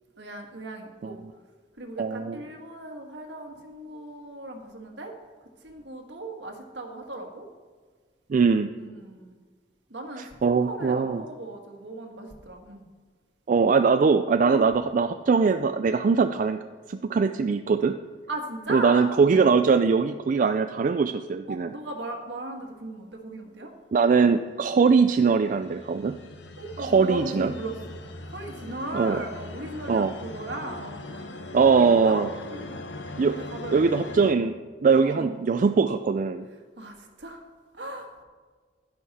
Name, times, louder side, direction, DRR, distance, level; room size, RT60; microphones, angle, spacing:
voice 1, 0.2-1.2 1.8-5.1 5.6-7.5 8.5-9.3 9.9-12.8 14.5-14.7 18.3-19.5 21.5-23.7 26.6-31.3 31.6-32.9 33.3-34.0 34.9-35.3 36.8-37.4 37.7-38.2, right 1 dB, 75° right, 2 dB, 1.7 m, -37 dB
voice 2, 2.0-2.4 8.3-8.7 10.4-11.2 13.5-16.6 16.9-18.0 18.7-21.7 23.9-26.2 26.8-27.5 28.9-29.2 29.9-30.1 31.5-32.3 33.2-33.4 33.7-34.5 34.8-36.5, right 5 dB, 45° right, 7 dB, 0.4 m, -21 dB
sound 1, 24.7-34.3, left 2 dB, 80° left, 0.9 m, -40 dB
11.0 x 10.5 x 4.2 m, 1.5 s
head